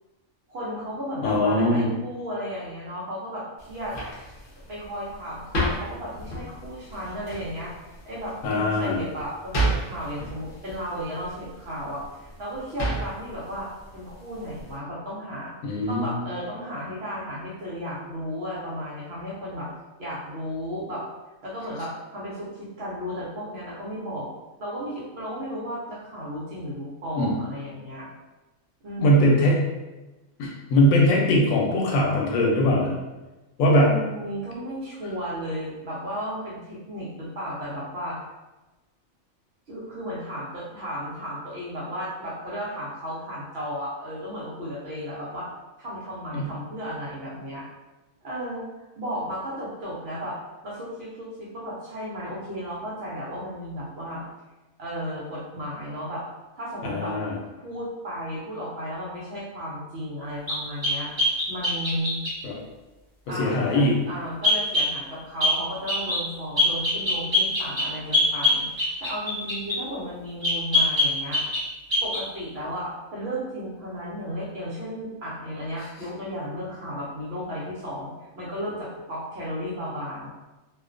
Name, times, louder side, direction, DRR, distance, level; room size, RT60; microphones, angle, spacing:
voice 1, 0.5-4.0 4.7-15.5 15.9-19.7 20.0-21.0 21.4-24.3 24.6-28.1 28.8-29.6 33.8-38.2 39.7-45.5 45.8-47.7 48.2-48.6 49.0-50.4 50.6-54.2 54.8-56.2 56.6-57.2 57.6-61.1 61.5-62.2 63.3-71.4 72.0-80.3, equal, 60° right, -6 dB, 0.8 m, -34 dB
voice 2, 1.2-1.9 8.4-9.0 15.6-16.2 27.1-27.3 29.0-29.6 30.4-32.9 33.6-33.9 46.3-46.5 56.8-57.3 62.4-62.6 63.4-63.9, left 1 dB, 90° left, -1 dB, 1.0 m, -21 dB
sound 1, 3.6-14.8, right 1 dB, 55° left, 0.7 m, -33 dB
sound 2, 60.5-62.4 64.4-64.9 65.4-65.6 65.9-66.2 66.6-69.8 70.4-71.7 71.9-72.2, left 2 dB, 30° right, 0.5 m, -23 dB
2.4 x 2.1 x 2.4 m, 1.1 s
omnidirectional pair, 1.4 m